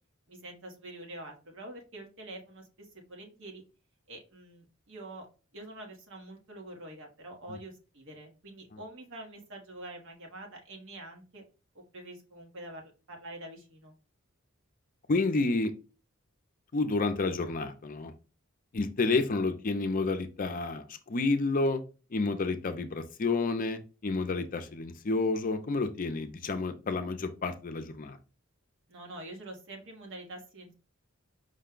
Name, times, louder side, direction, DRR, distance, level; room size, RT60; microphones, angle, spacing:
voice 1, 0.3-3.6 4.1-5.3 5.5-11.4 11.7-13.9 28.9-30.7, right 1 dB, 65° right, 2 dB, 1.3 m, -46 dB
voice 2, 15.1-15.7 16.7-18.1 18.7-21.8 22.1-28.2, left 3 dB, 40° left, 7 dB, 0.5 m, -30 dB
5.1 x 2.2 x 3.7 m, 0.33 s
head